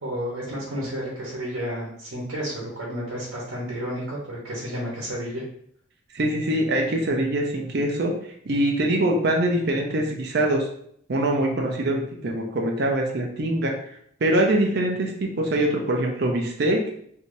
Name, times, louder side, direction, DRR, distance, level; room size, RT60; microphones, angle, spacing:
voice 1, 0.0-5.4, equal, 85° right, -5 dB, 1.0 m, -31 dB
voice 2, 6.1-8.1 8.5-10.7 11.1-13.7 14.2-16.8, right 1 dB, 55° right, 1 dB, 0.5 m, -23 dB
3.3 x 2.7 x 2.6 m, 0.67 s
head